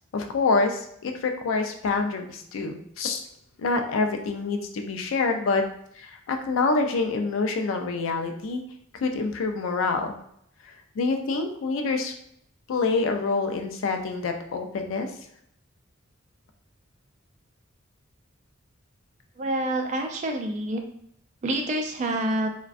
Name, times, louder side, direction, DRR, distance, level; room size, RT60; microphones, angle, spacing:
voice 1, 0.1-3.2 3.6-5.6 6.0-8.6 9.0-10.2 10.6-12.1 12.7-15.1, left 3 dB, 75° left, 5 dB, 0.4 m, -26 dB
voice 2, 19.4-20.8 21.4-22.5, right 1 dB, 35° right, 3 dB, 0.3 m, -27 dB
2.5 x 2.1 x 2.4 m, 0.71 s
head